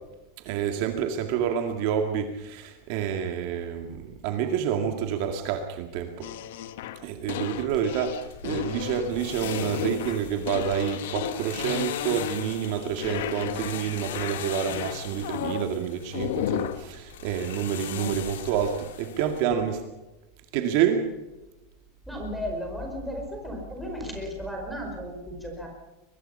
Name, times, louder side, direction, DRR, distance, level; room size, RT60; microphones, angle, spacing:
voice 1, 0.5-6.3 7.0-19.8 20.5-21.1, right 8 dB, 45° right, 5 dB, 2.1 m, -28 dB
sound 1, 6.2-12.7 13.0-13.8 14.1-15.7 16.1-16.9 17.9-18.1, left 11 dB, 65° left, 1.3 m, -33 dB
sound 2, 7.7-19.4, left 9 dB, 85° left, 2.5 m, -40 dB
voice 2, 19.1-19.6 22.1-25.7, equal, ahead, -1 dB, 5.0 m, -35 dB
23.0 x 21.0 x 5.6 m, 1.1 s
supercardioid pair, 170°, 0 cm